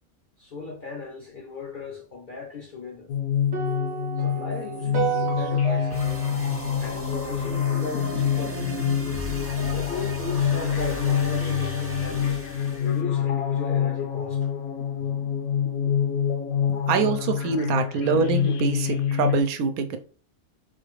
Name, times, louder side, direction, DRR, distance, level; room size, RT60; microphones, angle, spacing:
voice 1, 0.4-3.1 4.2-6.1 6.8-8.7 9.6-12.4 12.8-14.5, left 4 dB, 55° left, 0.5 m, -37 dB
sound 1, 3.1-19.4, left 8 dB, 80° left, 1.1 m, -26 dB
sound 2, 3.5-7.8, right 8 dB, 55° right, 0.9 m, -32 dB
sound 3, 5.9-13.0, equal, 15° right, 0.5 m, -35 dB
voice 2, 16.9-20.0, right 5 dB, 85° right, 1.1 m, -24 dB
3.9 x 2.4 x 3.1 m
omnidirectional pair, 1.5 m